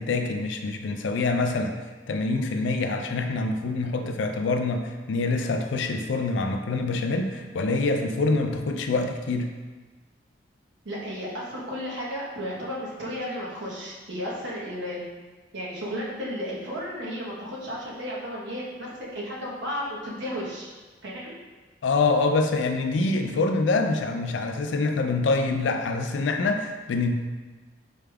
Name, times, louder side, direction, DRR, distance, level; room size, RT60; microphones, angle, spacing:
voice 1, 0.0-1.7 2.1-9.5 21.8-27.1, left 3 dB, 75° left, 5 dB, 0.4 m, -25 dB
voice 2, 10.8-15.0 15.5-20.7 21.0-21.3, equal, 70° right, -5 dB, 1.0 m, -33 dB
4.7 x 3.3 x 2.3 m, 1.3 s
head